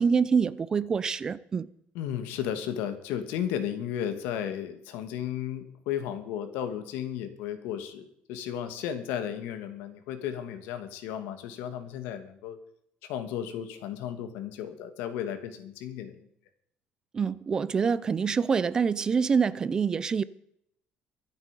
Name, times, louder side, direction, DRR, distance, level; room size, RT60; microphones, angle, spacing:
voice 1, 0.0-1.7 17.1-20.2, right 6 dB, 20° right, 0.5 m, -26 dB
voice 2, 1.9-12.6 13.0-16.3, left 9 dB, 90° left, 2.4 m, -34 dB
24.0 x 8.4 x 5.4 m
cardioid pair, 175°, 3 cm